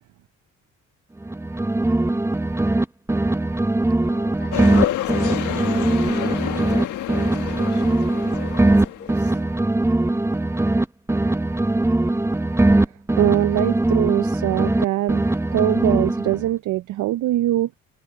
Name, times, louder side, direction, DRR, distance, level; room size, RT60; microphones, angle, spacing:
sound 1, 1.2-2.8 3.1-6.8 7.1-10.8 11.1-14.8 15.1-16.5, right 2 dB, 10° right, 0.8 m, -21 dB
voice 1, 4.0-9.4, left 5 dB, 35° left, 4.7 m, -45 dB
sound 2, 4.5-9.4, left 13 dB, 80° left, 1.6 m, -29 dB
voice 2, 13.2-15.2 15.5-17.7, right 14 dB, 75° right, 0.6 m, -22 dB
cardioid pair, 90°, 30 cm